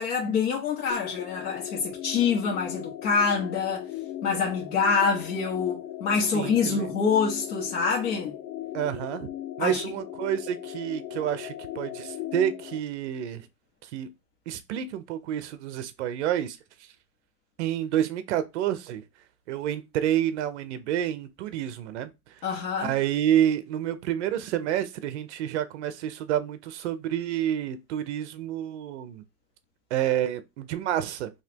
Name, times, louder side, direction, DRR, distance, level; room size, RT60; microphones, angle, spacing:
voice 1, 0.0-3.9 4.2-8.4 9.6-9.8 22.4-22.9, left 5 dB, 60° left, 1.4 m, -26 dB
sound 1, 0.9-12.8, left 12 dB, 85° left, 0.9 m, -38 dB
voice 2, 6.3-6.9 8.7-9.3 9.6-13.5 13.9-14.1 14.5-16.6 17.6-19.0 19.5-22.1 22.8-29.2 29.9-31.3, right 11 dB, 45° right, 0.6 m, -29 dB
4.1 x 2.9 x 2.8 m
supercardioid pair, 160°, 50 cm